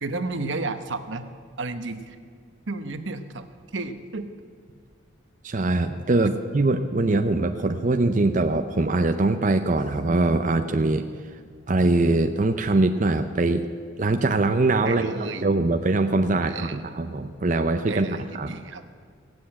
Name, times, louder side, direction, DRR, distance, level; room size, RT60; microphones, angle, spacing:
voice 1, 0.0-1.3 1.6-2.2 2.7-4.3 14.8-15.5 16.5-16.8 17.9-18.8, right 3 dB, 75° right, 9 dB, 1.0 m, -32 dB
voice 2, 5.4-11.0 11.7-13.6 14.0-18.1 18.4-18.5, right 2 dB, 40° right, 6 dB, 0.6 m, -22 dB
17.0 x 7.9 x 8.5 m, 2.1 s
head